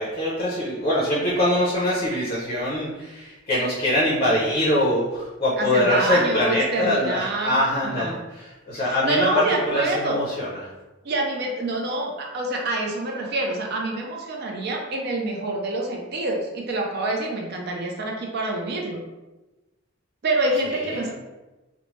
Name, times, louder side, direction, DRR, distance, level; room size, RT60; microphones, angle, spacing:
voice 1, 0.0-8.1 8.7-10.5 20.9-21.1, left 1 dB, 30° left, -5 dB, 0.5 m, -23 dB
voice 2, 5.6-8.2 8.7-10.2 11.0-19.0 20.2-21.1, right 2 dB, 55° right, 0 dB, 0.4 m, -27 dB
2.9 x 2.1 x 3.0 m, 1.1 s
head